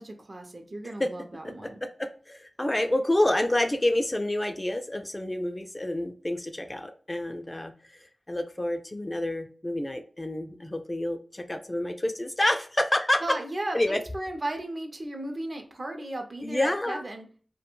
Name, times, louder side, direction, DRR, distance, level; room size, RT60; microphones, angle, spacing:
voice 1, 0.0-1.8 13.2-17.3, right 1 dB, 55° right, 4 dB, 0.5 m, -35 dB
voice 2, 1.8-7.7 8.3-13.2 13.7-14.0 16.4-17.0, left 1 dB, 30° left, 7 dB, 0.3 m, -28 dB
2.3 x 2.2 x 2.9 m, 0.41 s
cardioid pair, 40°, 0 cm